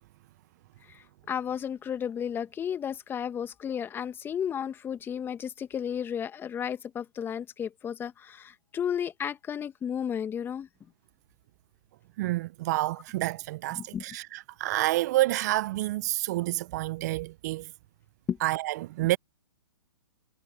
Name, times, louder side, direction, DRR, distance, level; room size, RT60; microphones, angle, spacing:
voice 1, 0.9-10.7 13.7-14.0 18.3-18.4, left 8 dB, 15° left, 1.7 m, -33 dB
voice 2, 12.2-17.7 18.4-19.2, right 17 dB, 40° right, 0.6 m, -29 dB
hypercardioid pair, 125°, 14 cm